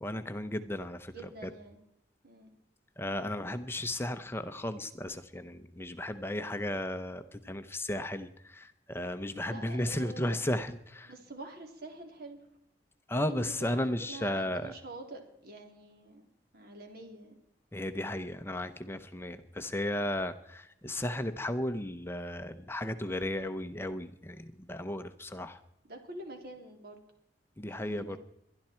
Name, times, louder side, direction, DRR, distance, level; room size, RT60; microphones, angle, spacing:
voice 1, 0.0-1.1 1.4-1.5 3.0-11.1 13.1-14.7 17.7-25.6 27.6-28.2, left 1 dB, 15° left, 9 dB, 0.7 m, -35 dB
voice 2, 1.1-1.8 2.2-2.5 9.5-10.4 11.1-12.4 13.3-16.3 16.5-17.4 25.9-27.0 27.8-28.2, right 2 dB, 60° right, 3 dB, 3.3 m, -46 dB
22.5 x 11.5 x 4.4 m, 0.82 s
head